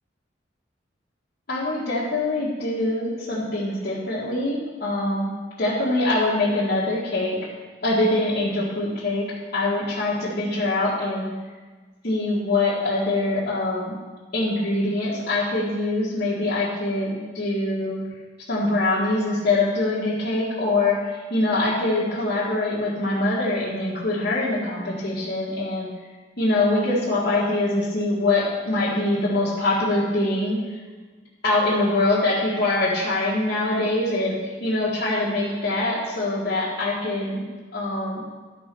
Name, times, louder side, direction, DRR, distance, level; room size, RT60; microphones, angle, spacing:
voice 1, 1.5-5.3 5.6-7.4 7.8-9.2 9.5-11.3 12.0-13.9 14.3-18.0 18.5-25.9 26.4-30.6 31.4-37.4 37.7-38.2, left 2 dB, 55° left, -10 dB, 1.7 m, -24 dB
12.0 x 4.3 x 5.3 m, 1.4 s
head